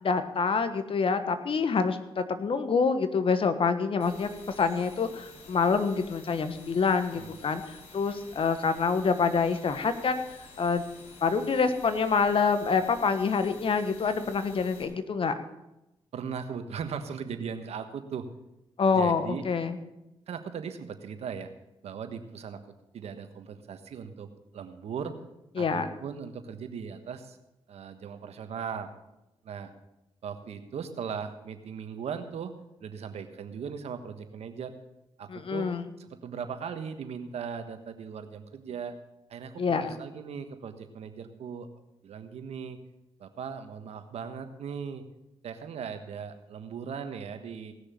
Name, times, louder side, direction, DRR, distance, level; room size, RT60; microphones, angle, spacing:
voice 1, 0.0-10.2 10.6-10.8 11.2-15.3 18.8-19.8 25.6-25.9 35.3-35.8 39.6-39.9, left 5 dB, 55° left, 10 dB, 1.3 m, -26 dB
sound 1, 4.0-14.8, left 4 dB, 75° left, 3.3 m, -50 dB
voice 2, 16.1-18.3 18.9-19.4 20.3-21.5 21.8-25.2 25.6-27.4 27.7-28.9 29.4-29.7 30.2-32.5 32.8-34.7 35.2-38.9 39.3-41.7 42.0-42.8 43.2-45.0 45.4-47.7, right 6 dB, 75° right, 8 dB, 1.3 m, -38 dB
18.0 x 6.6 x 6.9 m, 0.92 s
cardioid pair, 65°, 11 cm